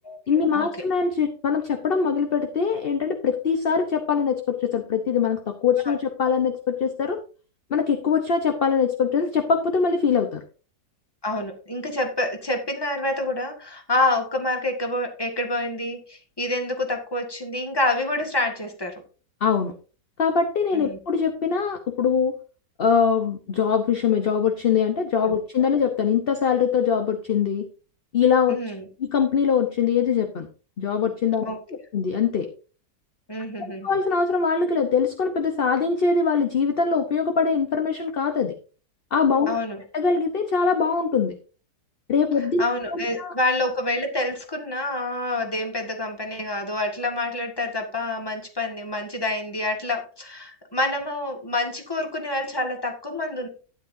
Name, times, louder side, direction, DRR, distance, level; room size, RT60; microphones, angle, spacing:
voice 1, 0.3-7.2 7.7-10.4 19.4-19.7 20.2-22.3 22.8-27.7 28.1-28.6 29.0-30.5 30.8-31.4 31.9-32.5 33.8-38.5 39.1-39.5 39.9-41.3 42.1-42.6 42.9-43.3, left 6 dB, 40° left, 6 dB, 0.9 m, -22 dB
voice 2, 11.2-19.0 20.7-21.0 25.2-25.3 28.5-28.9 31.4-31.6 33.3-33.9 39.5-39.8 42.6-53.5, left 2 dB, 15° left, 3 dB, 1.8 m, -27 dB
12.5 x 10.0 x 2.7 m, 0.36 s
omnidirectional pair, 1.8 m